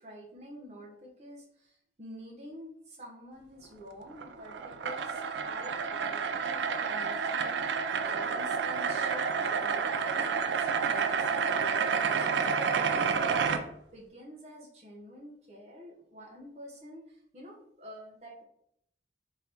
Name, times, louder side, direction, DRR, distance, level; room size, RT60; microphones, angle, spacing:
voice 1, 0.0-12.3 12.8-18.4, equal, 40° right, -2 dB, 0.8 m, -48 dB
sound 1, 4.1-13.6, right 6 dB, 80° right, 0.4 m, -29 dB
3.7 x 3.3 x 2.8 m, 0.72 s
head